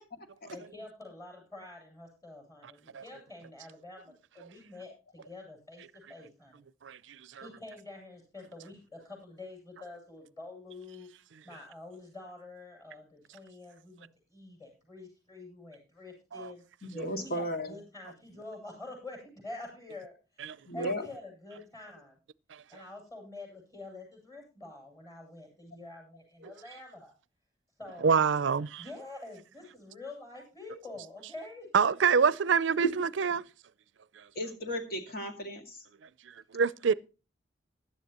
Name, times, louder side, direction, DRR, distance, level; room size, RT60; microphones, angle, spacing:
voice 1, 0.5-6.6 7.3-11.1 11.4-16.6 17.1-20.5 20.7-22.2 22.7-27.1 27.8-28.2 28.8-31.7 32.2-32.6, left 2 dB, 20° left, 7.9 m, -47 dB
voice 2, 6.8-7.3 16.3-16.5 20.4-20.6 28.0-28.8 31.7-33.4 36.5-36.9, right 6 dB, 80° right, 0.5 m, -26 dB
voice 3, 16.8-17.7 20.7-21.0 26.4-26.5 32.8-32.9 34.4-35.8, equal, 55° left, 2.4 m, -34 dB
16.5 x 11.5 x 3.0 m
head